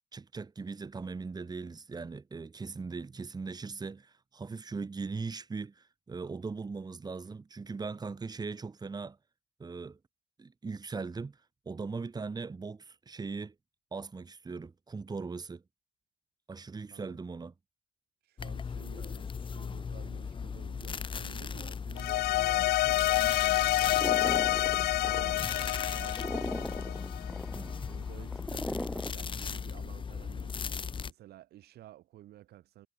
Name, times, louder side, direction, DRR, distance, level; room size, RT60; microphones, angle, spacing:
voice 1, 0.1-9.2 9.6-10.0 10.4-13.5 13.9-15.6 16.5-17.5 27.5-27.9, right 4 dB, 25° right, 4.0 m, -39 dB
voice 2, 18.2-24.6 25.0-27.0 27.8-30.6 31.0-32.9, right 14 dB, 70° right, 6.1 m, -52 dB
sound 1, 18.4-31.1, left 6 dB, 30° left, 1.3 m, -38 dB
sound 2, 22.0-27.3, left 17 dB, 70° left, 0.5 m, -28 dB
sound 3, 23.9-29.1, equal, ahead, 0.9 m, -38 dB
cardioid pair, 110°, 17 cm